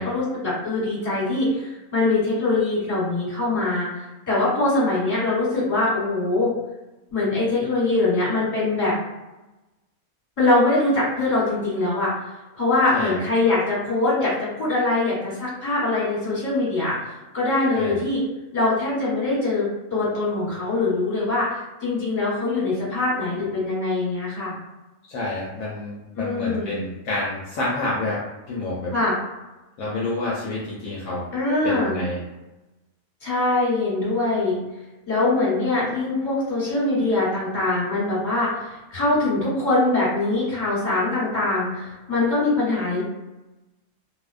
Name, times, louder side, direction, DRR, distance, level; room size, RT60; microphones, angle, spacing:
voice 1, 0.0-6.5 7.1-9.0 10.4-12.1 12.5-18.2 18.5-24.5 26.2-26.7 28.9-29.1 31.3-32.0 33.2-34.6 35.1-43.0, left 2 dB, 30° left, -9 dB, 1.3 m, -23 dB
voice 2, 25.1-28.9 29.8-31.3 31.6-32.2, left 2 dB, 75° left, -5 dB, 1.0 m, -28 dB
2.6 x 2.1 x 2.3 m, 1.0 s
omnidirectional pair, 1.5 m